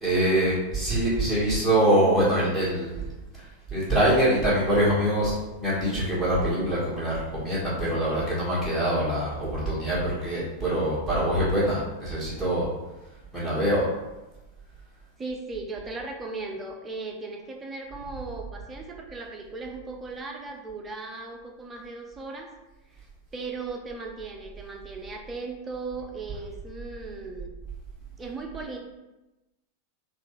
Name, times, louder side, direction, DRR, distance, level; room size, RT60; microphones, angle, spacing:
voice 1, 0.0-3.0 3.3-12.7 13.3-13.9, right 1 dB, ahead, -11 dB, 1.5 m, -24 dB
voice 2, 15.2-22.5 22.9-23.1 23.3-27.5 28.2-28.8, right 3 dB, 20° right, 1 dB, 0.5 m, -37 dB
3.5 x 2.4 x 3.1 m, 1.0 s
figure-of-eight pair, 90°, 0 cm